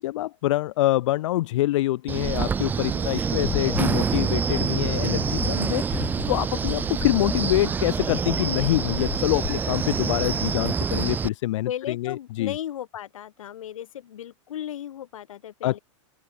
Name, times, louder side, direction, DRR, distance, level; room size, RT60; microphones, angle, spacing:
voice 1, 0.0-12.5 15.6-15.8, left 16 dB, 65° left, 0.7 m, -25 dB
Wind, 2.1-11.3, right 6 dB, 10° right, 0.3 m, -26 dB
sound 1, 3.4-9.6, left 24 dB, 45° left, 3.6 m, -35 dB
voice 2, 4.6-5.0 5.9-6.3 11.7-15.8, left 11 dB, 85° left, 1.5 m, -36 dB
hypercardioid pair, 125°, 17 cm